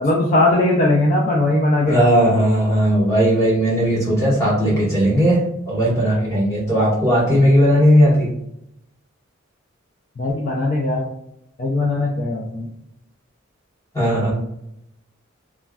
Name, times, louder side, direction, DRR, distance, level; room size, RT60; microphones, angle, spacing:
voice 1, 0.0-2.4 7.3-7.4 10.2-11.1 11.6-12.7, left 2 dB, 40° left, -3 dB, 0.4 m, -19 dB
voice 2, 1.8-8.3 13.9-14.3, equal, 15° left, -8 dB, 1.4 m, -17 dB
3.1 x 2.4 x 2.3 m, 0.79 s
head